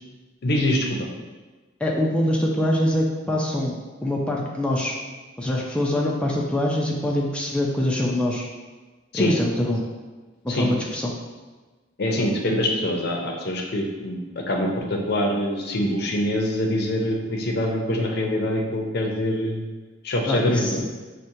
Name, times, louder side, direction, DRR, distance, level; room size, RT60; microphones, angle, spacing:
voice 1, 0.4-1.0 9.1-9.4 10.5-10.7 12.0-19.6 20.0-20.8, left 1 dB, 60° left, 1 dB, 0.6 m, -24 dB
voice 2, 1.8-3.7 4.0-5.0 5.4-8.5 9.1-9.8 10.4-11.1 20.3-20.8, left 1 dB, 5° left, -3 dB, 0.4 m, -24 dB
5.9 x 2.1 x 2.6 m, 1.3 s
head